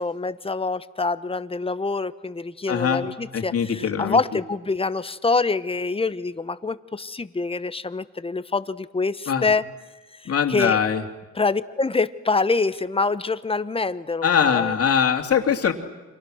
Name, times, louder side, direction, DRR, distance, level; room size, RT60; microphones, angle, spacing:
voice 1, 0.0-9.6 10.1-10.8 11.3-14.7, left 3 dB, 20° left, 14 dB, 1.1 m, -25 dB
voice 2, 2.7-3.0 3.3-4.2 9.3-9.5 10.3-11.0 14.2-15.7, left 7 dB, 50° left, 6 dB, 2.7 m, -22 dB
30.0 x 26.5 x 6.5 m, 1.2 s
cardioid pair, 90°, 30 cm